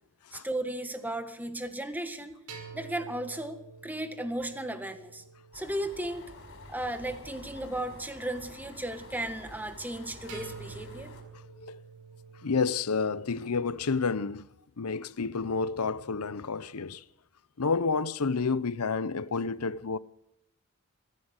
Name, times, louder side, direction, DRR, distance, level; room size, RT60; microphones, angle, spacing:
voice 1, 0.3-2.4 2.7-5.2 5.5-6.3 6.7-11.1, right 1 dB, 10° right, 1.7 m, -35 dB
sound 1, 2.5-6.8 10.3-14.1, right 5 dB, 90° right, 5.4 m, -49 dB
sound 2, 5.5-11.2, left 1 dB, 60° left, 5.7 m, -48 dB
voice 2, 11.3-11.8 12.4-14.5 14.8-17.0 17.6-20.0, left 4 dB, 80° left, 0.8 m, -30 dB
24.0 x 15.0 x 8.1 m
head